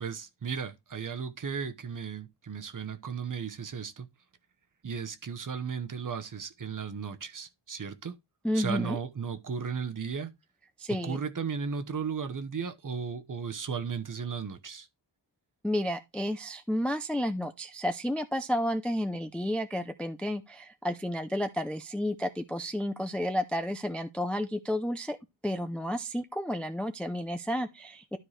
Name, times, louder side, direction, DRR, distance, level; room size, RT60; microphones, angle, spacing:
voice 1, 0.0-4.1 4.8-8.1 8.5-10.3 11.0-14.9, right 6 dB, 40° right, 0.9 m, -35 dB
voice 2, 8.4-9.0 10.8-11.2 15.6-25.2 25.4-28.2, equal, 5° left, 0.4 m, -31 dB
12.5 x 4.5 x 3.2 m
wide cardioid pair, 170°, 48 cm